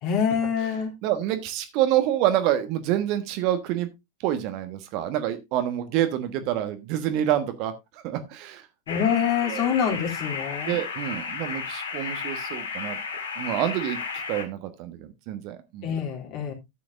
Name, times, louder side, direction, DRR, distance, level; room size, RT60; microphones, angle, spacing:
voice 1, 0.0-0.9 8.9-10.8 15.8-16.5, left 7 dB, 40° left, 1 dB, 2.9 m, -25 dB
voice 2, 1.0-3.9 4.2-7.7 8.0-8.6 9.4-9.9 10.7-13.0 13.4-15.9, right 12 dB, 40° right, 9 dB, 1.2 m, -27 dB
sound 1, 8.9-14.4, left 5 dB, 65° left, 2.0 m, -33 dB
12.5 x 8.3 x 2.5 m, 0.22 s
figure-of-eight pair, 90°, 0 cm